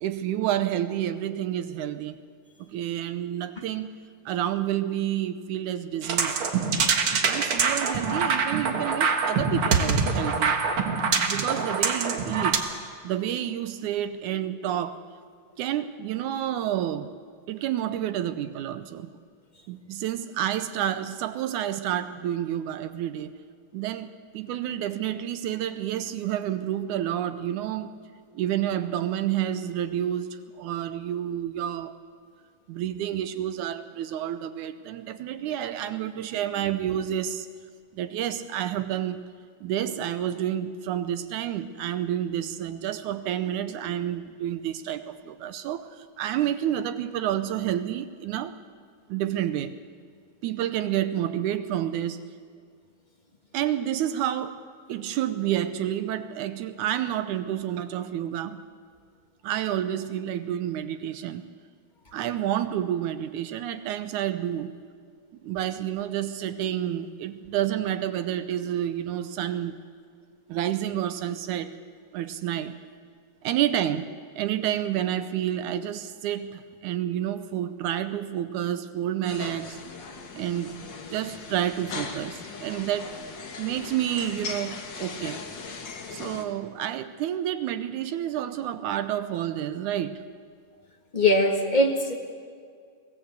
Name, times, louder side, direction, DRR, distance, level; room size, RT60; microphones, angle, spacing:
voice 1, 0.0-2.2 2.6-4.0 4.3-6.4 7.2-10.6 11.1-12.6 13.0-15.0 15.6-17.1 17.5-19.1 19.7-23.3 23.7-27.9 28.4-31.9 32.7-37.5 37.9-39.2 39.6-48.5 49.1-49.7 50.4-52.3 53.5-54.6 54.9-58.6 59.4-61.5 62.1-64.8 65.4-69.8 70.5-71.8 72.1-72.8 73.4-74.1 74.4-79.8 80.4-80.8 81.1-83.1 83.6-85.4 86.1-90.2, right 11 dB, 75° right, 11 dB, 2.0 m, -29 dB
sound 1, 6.0-12.6, right 5 dB, 50° right, 1.9 m, -25 dB
sound 2, 79.2-86.4, left 4 dB, 40° left, 1.9 m, -39 dB
voice 2, 91.1-92.1, left 1 dB, 25° left, 2 dB, 0.9 m, -21 dB
23.0 x 17.0 x 8.1 m, 2.1 s
omnidirectional pair, 3.7 m